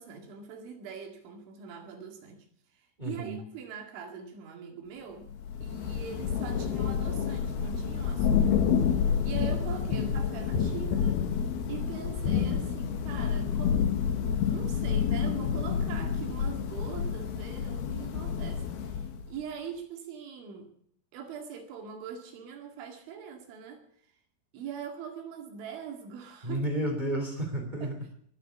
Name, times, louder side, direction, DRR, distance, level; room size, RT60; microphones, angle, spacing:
voice 1, 0.0-2.5 2.7-5.3 5.6-8.7 9.2-11.2 11.7-20.7 21.1-23.8 24.5-26.6 27.8-27.9, right 7 dB, 70° right, 4 dB, 4.4 m, -42 dB
voice 2, 3.0-3.4 26.4-28.1, right 1 dB, 15° right, 3 dB, 1.6 m, -32 dB
Thunder / Rain, 5.3-19.4, left 7 dB, 65° left, 2.6 m, -29 dB
22.5 x 7.8 x 7.1 m, 0.66 s
omnidirectional pair, 5.9 m